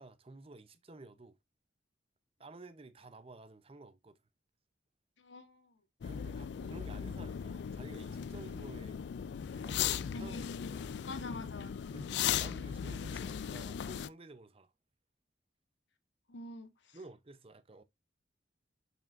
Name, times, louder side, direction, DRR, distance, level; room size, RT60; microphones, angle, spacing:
voice 1, 0.0-1.4 2.4-4.2 6.0-9.0 9.5-11.0 11.9-14.7 16.9-17.8, right 2 dB, 30° right, 0.7 m, -52 dB
voice 2, 5.2-5.8 10.1-10.5 11.0-11.9 16.3-17.0, left 2 dB, 80° left, 1.3 m, -46 dB
sound 1, 6.0-14.1, left 9 dB, 65° left, 0.3 m, -37 dB
6.6 x 6.3 x 2.5 m
head